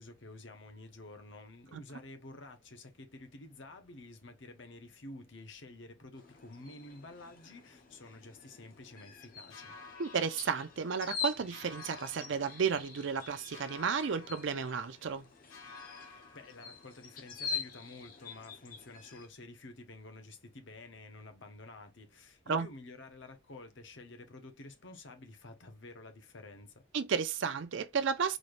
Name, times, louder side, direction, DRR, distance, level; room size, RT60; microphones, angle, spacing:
voice 1, 0.0-9.8 16.0-26.8, left 2 dB, 65° left, 0.9 m, -50 dB
sound 1, 6.1-19.3, left 5 dB, 45° left, 0.6 m, -45 dB
sound 2, 9.5-11.2 11.5-13.2 13.5-15.2 15.5-17.2, left 4 dB, 90° left, 1.8 m, -53 dB
voice 2, 10.0-15.3 22.5-22.7 26.9-28.4, right 6 dB, 65° right, 0.5 m, -33 dB
4.1 x 3.2 x 2.5 m
head